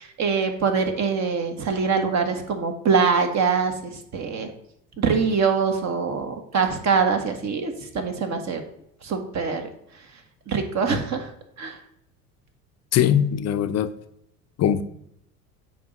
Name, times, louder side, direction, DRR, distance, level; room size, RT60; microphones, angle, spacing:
voice 1, 0.0-4.5 5.0-8.6 9.0-9.6 10.5-11.3 11.6-11.8, right 5 dB, 40° right, 1.5 m, -24 dB
voice 2, 12.9-13.9 14.6-14.8, left 9 dB, 35° left, 0.7 m, -21 dB
9.0 x 3.1 x 6.5 m
hypercardioid pair, 70°, 44 cm